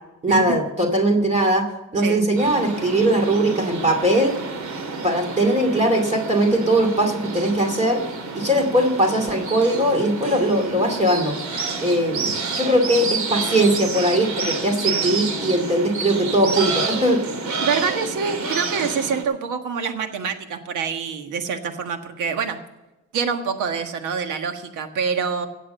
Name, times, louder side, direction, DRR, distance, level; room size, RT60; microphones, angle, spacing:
voice 1, 0.2-4.4 5.0-8.1 8.3-11.4 11.8-17.2, right 1 dB, 20° right, 4 dB, 2.6 m, -20 dB
voice 2, 2.0-2.4 4.7-4.8 17.6-22.6 23.1-25.5, right 6 dB, 85° right, 7 dB, 1.6 m, -26 dB
sound 1, 2.4-19.2, right 4 dB, 70° right, 2.4 m, -29 dB
17.0 x 7.3 x 6.9 m, 1.0 s
cardioid pair, 90°, 30 cm